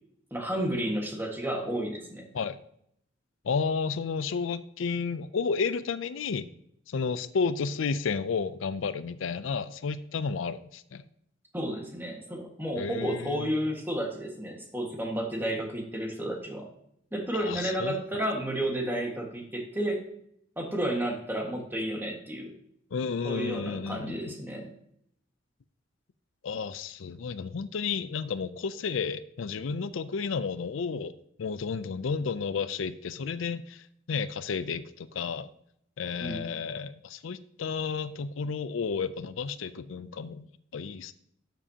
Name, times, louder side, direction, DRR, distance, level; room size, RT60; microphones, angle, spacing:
voice 1, 0.3-2.3 11.5-16.7 17.1-20.0 20.6-22.5 23.2-24.7 36.2-36.5, right 1 dB, 10° right, 1 dB, 1.6 m, -32 dB
voice 2, 3.4-6.5 6.9-11.1 12.8-13.5 17.3-17.9 22.9-24.3 26.4-31.1 31.4-35.5 36.0-40.5 40.7-41.1, left 5 dB, 80° left, 14 dB, 0.4 m, -32 dB
12.0 x 7.5 x 2.8 m, 0.71 s
head